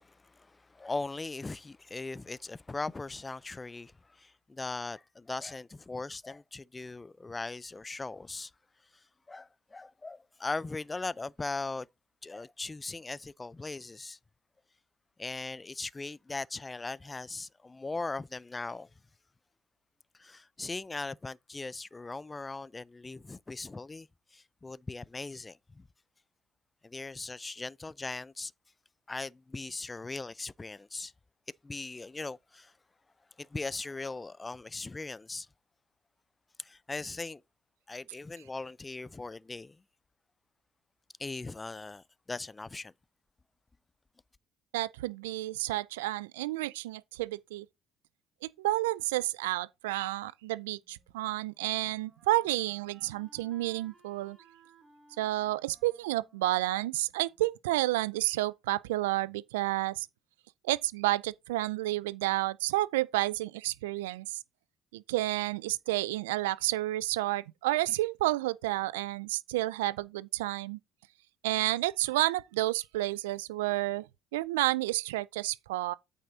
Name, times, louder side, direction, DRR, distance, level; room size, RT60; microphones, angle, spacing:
voice 1, 0.0-8.5 9.3-11.9 12.2-14.2 15.2-18.9 20.2-25.9 26.8-28.5 29.1-31.1 31.6-32.7 33.4-35.5 36.6-37.4 37.9-39.8 41.2-42.9, left 3 dB, 20° left, 0.4 m, -39 dB
voice 2, 44.7-47.7 48.4-54.4 55.2-60.1 60.6-64.4 64.9-70.8 71.4-74.0 74.3-75.9, right 17 dB, 90° right, 0.4 m, -30 dB
Wind instrument woodwind instrument, 50.8-57.7, right 4 dB, 40° right, 3.4 m, -62 dB
8.7 x 5.6 x 4.0 m
hypercardioid pair, 60°, 0 cm